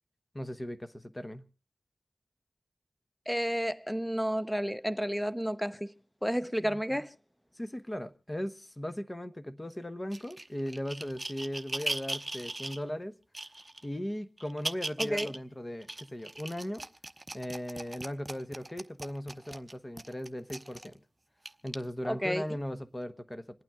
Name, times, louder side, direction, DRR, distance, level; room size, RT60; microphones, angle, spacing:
voice 1, 0.3-1.4 6.6-6.8 7.6-13.2 13.8-16.8 17.3-21.0 21.6-23.6, equal, 25° left, 1.1 m, -38 dB
voice 2, 3.3-5.9 6.2-7.1 15.0-15.3 22.0-22.4, equal, 5° left, 0.8 m, -31 dB
sound 1, 10.1-12.8 13.3-13.9 14.4-15.4 15.8-20.9 21.5-21.7 22.5-22.6, right 2 dB, 25° right, 0.9 m, -39 dB
27.5 x 9.1 x 3.6 m
cardioid pair, 55°, 0 cm